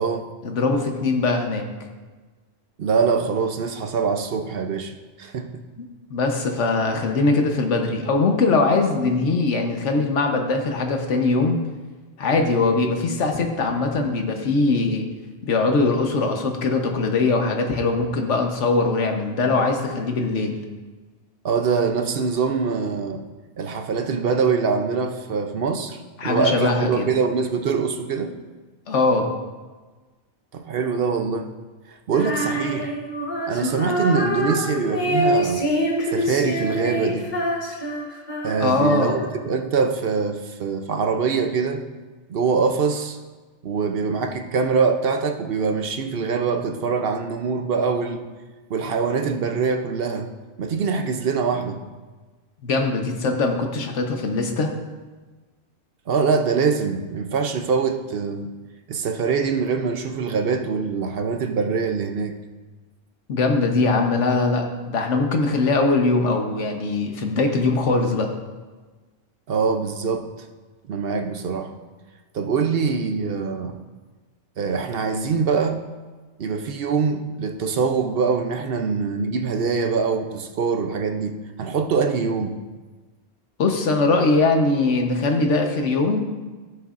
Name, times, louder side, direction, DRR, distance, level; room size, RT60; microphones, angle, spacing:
voice 1, 0.4-1.7 5.8-11.6 12.2-15.1 15.4-20.6 26.2-27.1 28.9-29.3 38.6-39.2 52.6-54.7 63.3-68.3 83.6-86.2, left 3 dB, 85° left, 4 dB, 1.3 m, -21 dB
voice 2, 2.8-5.6 21.4-23.2 23.6-28.4 30.5-31.5 31.9-32.9 33.5-35.6 36.1-37.3 38.4-41.9 42.3-43.2 43.6-48.2 48.7-50.3 50.6-51.8 56.1-58.5 58.9-62.4 69.5-70.3 70.9-71.7 72.3-73.8 74.6-75.8 76.4-82.6, right 5 dB, 60° right, 6 dB, 0.8 m, -24 dB
Female singing, 32.1-39.5, equal, 45° left, 1.3 m, -25 dB
15.5 x 6.6 x 2.5 m, 1.3 s
omnidirectional pair, 1.2 m